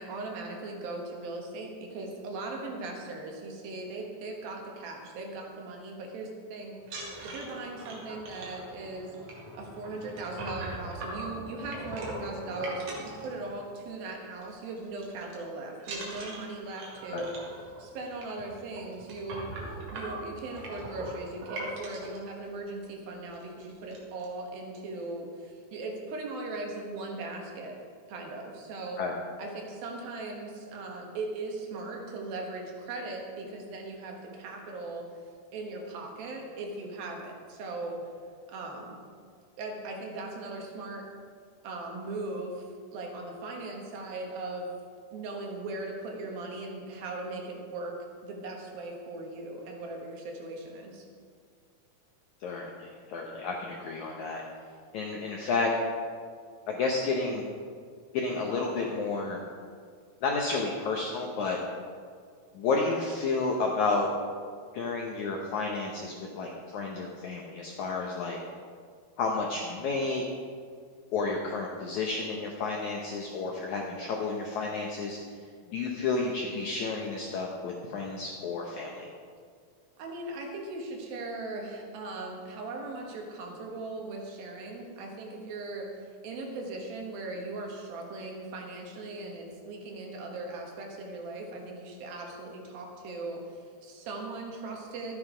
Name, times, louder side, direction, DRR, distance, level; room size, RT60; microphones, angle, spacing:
voice 1, 0.0-6.8 7.2-9.1 9.5-17.4 17.8-27.8 28.1-29.0 29.4-35.1 35.5-38.1 38.5-39.0 39.6-41.1 41.6-42.7 42.9-44.7 45.1-48.0 48.2-51.0 80.0-95.2, right 2 dB, 70° right, 1 dB, 3.1 m, -39 dB
sound 1, 6.8-13.9 14.2-14.5 14.8-15.3 15.8-22.2 22.8-22.9 23.3-23.4 23.7-24.3, right 1 dB, 50° right, 2.9 m, -41 dB
voice 2, 52.4-54.4 54.9-55.7 56.7-57.5 58.1-59.4 60.2-61.6 62.5-64.1 64.7-68.4 69.2-70.2 71.1-75.2 75.7-79.1, left 3 dB, 75° left, 0 dB, 1.7 m, -31 dB
13.0 x 9.6 x 5.0 m, 2.1 s
omnidirectional pair, 4.6 m